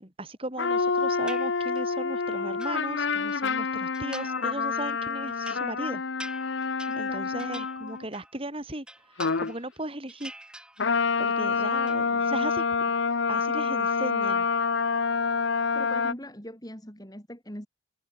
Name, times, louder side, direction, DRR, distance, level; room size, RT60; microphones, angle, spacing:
voice 1, 0.0-6.0 7.0-8.9 9.2-10.3 11.2-13.0 13.3-14.5, right 1 dB, 30° right, 4.0 m, -37 dB
sound 1, 0.6-8.1 9.2-9.6 10.8-16.1, left 5 dB, 65° left, 0.8 m, -27 dB
sound 2, 1.3-2.0 2.3-3.4 3.9-4.6 4.9-8.4 8.7-9.8 10.1-11.2 11.4-12.0, right 1 dB, 5° right, 5.7 m, -46 dB
voice 2, 6.9-7.4 11.5-11.7 15.7-17.7, equal, 20° left, 5.9 m, -41 dB
head